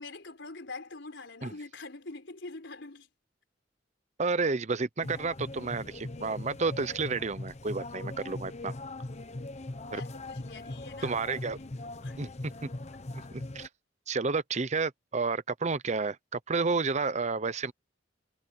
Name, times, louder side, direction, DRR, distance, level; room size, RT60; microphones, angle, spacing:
voice 1, 0.0-3.1 9.9-12.2, left 3 dB, 85° left, 4.0 m, -45 dB
voice 2, 4.2-8.7 9.9-10.0 11.0-11.6 12.2-12.3 12.6-12.7 13.1-13.7 14.1-17.7, right 4 dB, 40° right, 0.8 m, -31 dB
sound 1, 5.0-13.7, left 2 dB, 40° left, 0.9 m, -40 dB
head